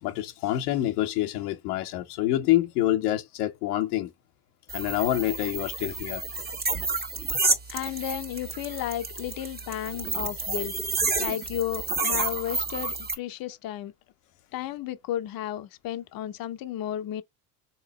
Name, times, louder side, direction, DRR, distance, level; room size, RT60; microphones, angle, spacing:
voice 1, 0.0-4.1 4.7-6.2, left 14 dB, 85° left, 0.8 m, -26 dB
sound 1, 4.7-13.1, right 3 dB, 20° right, 1.2 m, -30 dB
voice 2, 7.7-10.7 11.2-13.9 14.5-17.2, left 12 dB, 50° left, 0.7 m, -33 dB
3.9 x 2.8 x 3.0 m
hypercardioid pair, 75°, 45 cm